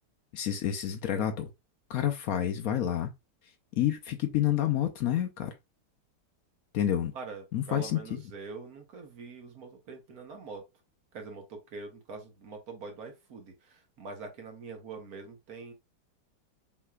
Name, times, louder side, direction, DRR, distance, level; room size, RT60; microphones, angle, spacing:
voice 1, 0.3-1.5 1.9-3.1 3.7-5.5 6.7-7.1 7.5-8.2, left 11 dB, 70° left, 0.9 m, -29 dB
voice 2, 7.1-10.7 11.1-15.7, right 4 dB, 60° right, 1.4 m, -44 dB
5.6 x 3.0 x 2.3 m
omnidirectional pair, 2.0 m